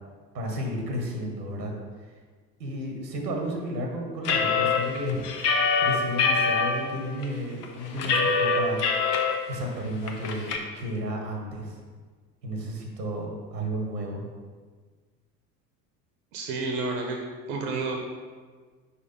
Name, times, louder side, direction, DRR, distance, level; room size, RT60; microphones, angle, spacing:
voice 1, 0.3-1.7 2.6-8.8 9.5-11.8 12.4-14.2, equal, 80° right, 1 dB, 1.2 m, -32 dB
sound 1, 4.2-6.7 7.2-7.3 7.6-9.3 9.7-9.8 10.1-10.6, left 5 dB, 70° left, 0.9 m, -24 dB
voice 2, 16.3-17.2 17.5-18.0, right 3 dB, 65° right, 2 dB, 0.9 m, -30 dB
5.0 x 4.3 x 5.1 m, 1.5 s
figure-of-eight pair, 65°, 48 cm